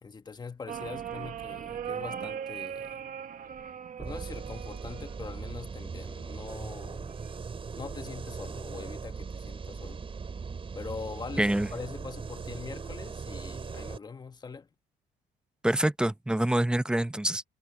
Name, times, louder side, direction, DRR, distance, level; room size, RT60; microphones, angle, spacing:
voice 1, 0.0-3.1 4.0-7.1 7.8-10.0 10.7-14.7, left 5 dB, 20° left, 1.4 m, -42 dB
sound 1, 0.7-5.7 6.9-7.4, right 8 dB, 45° right, 1.3 m, -39 dB
sound 2, 4.0-14.0, right 5 dB, 30° right, 4.3 m, -39 dB
voice 2, 11.4-11.7 15.6-17.4, right 1 dB, 5° right, 0.7 m, -26 dB
cardioid pair, 110°, 19 cm